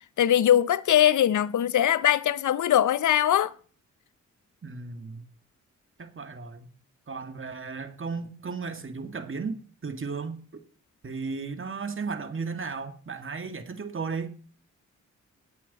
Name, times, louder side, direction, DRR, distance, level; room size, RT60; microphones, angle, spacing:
voice 1, 0.2-3.5, left 11 dB, 70° left, 0.7 m, -21 dB
voice 2, 4.6-5.2 6.0-6.7 7.1-10.4 11.0-14.3, right 4 dB, 40° right, 2.1 m, -35 dB
18.5 x 8.4 x 4.2 m
cardioid pair, 60°, 31 cm